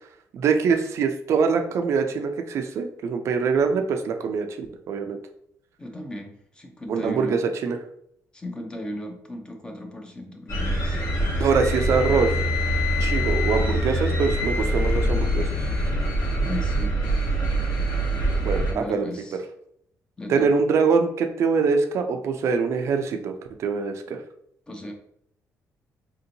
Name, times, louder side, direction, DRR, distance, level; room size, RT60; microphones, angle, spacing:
voice 1, 0.3-5.2 6.9-7.8 11.4-12.3 13.0-15.5 18.4-19.1 20.3-23.3 23.6-24.2, right 5 dB, 55° right, 6 dB, 0.4 m, -23 dB
voice 2, 5.8-7.4 8.3-11.0 16.4-17.5 18.7-19.4 20.2-20.5 24.7-24.9, left 1 dB, 15° left, 3 dB, 0.5 m, -36 dB
sound 1, 10.5-18.7, equal, 55° left, 1.1 m, -24 dB
4.3 x 2.7 x 2.6 m, 0.70 s
cardioid pair, 155°, 6 cm